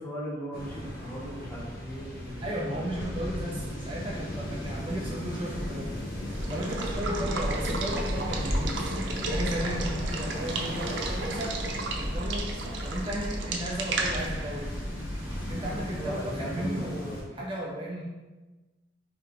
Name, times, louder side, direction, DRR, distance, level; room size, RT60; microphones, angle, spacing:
voice 1, 0.0-2.4 2.7-2.9 15.6-17.2, equal, 10° left, -4 dB, 0.8 m, -38 dB
sound 1, 0.5-17.2, equal, 50° left, 0.9 m, -35 dB
voice 2, 2.4-5.9 6.2-8.9 9.3-11.5 12.0-14.7 15.5-18.0, equal, 25° right, -4 dB, 0.5 m, -35 dB
sound 2, 3.0-5.6, equal, 80° left, 0.9 m, -44 dB
Water / Water tap faucet / Liquid, 6.3-15.9, right 3 dB, 75° right, 0.5 m, -35 dB
3.2 x 3.1 x 3.7 m, 1.2 s
head